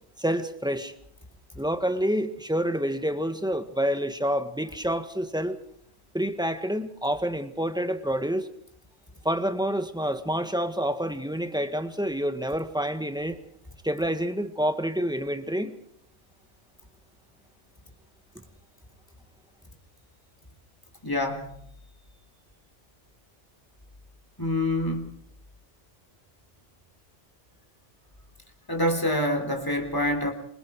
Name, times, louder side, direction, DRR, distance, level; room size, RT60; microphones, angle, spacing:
voice 1, 0.2-0.9 1.6-5.6 6.1-8.5 9.2-13.4 13.8-15.7, equal, 5° right, 1.6 m, -28 dB
voice 2, 21.0-21.6 24.4-25.1 28.7-30.3, left 1 dB, 20° left, 3.7 m, -26 dB
27.5 x 25.0 x 4.8 m
omnidirectional pair, 1.2 m